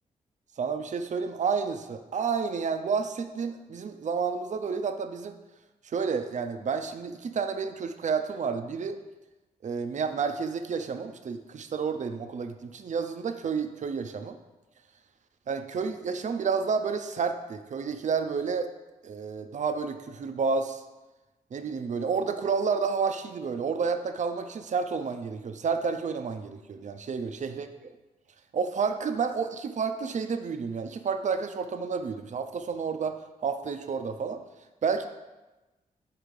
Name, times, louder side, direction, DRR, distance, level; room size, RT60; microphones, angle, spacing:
voice 1, 0.6-5.4 5.9-9.0 9.6-14.4 15.5-18.7 19.0-20.8 21.5-27.9 28.5-34.4 34.8-35.1, right 5 dB, 50° right, 8 dB, 0.5 m, -30 dB
4.8 x 4.1 x 5.1 m, 1.1 s
supercardioid pair, 50°, 16 cm